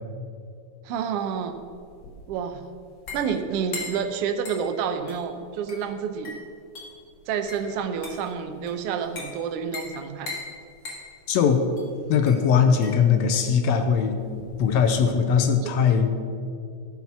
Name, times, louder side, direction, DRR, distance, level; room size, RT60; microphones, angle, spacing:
voice 1, 0.8-1.6 2.3-2.7 3.1-6.4 7.3-10.4 15.6-15.7, right 7 dB, 70° right, 7 dB, 1.5 m, -29 dB
sound 1, 1.2-15.2, left 3 dB, 40° left, 2.6 m, -41 dB
voice 2, 11.3-11.6 12.1-14.2 14.6-16.1, left 7 dB, 75° left, 6 dB, 1.8 m, -20 dB
13.5 x 5.7 x 6.0 m, 2.4 s
omnidirectional pair, 3.4 m